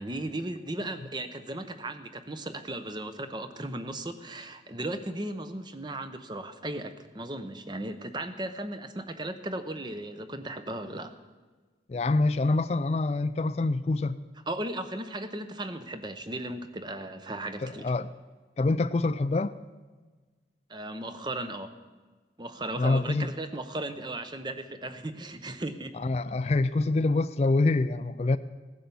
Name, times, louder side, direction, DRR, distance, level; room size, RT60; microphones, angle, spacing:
voice 1, 0.0-11.1 14.5-17.9 20.7-21.7 22.4-25.9, right 1 dB, 25° right, 0.8 m, -36 dB
voice 2, 11.9-14.2 17.6-18.1 18.6-19.5 22.8-23.3 26.0-28.4, left 2 dB, 35° left, 0.4 m, -26 dB
16.5 x 10.0 x 7.0 m
head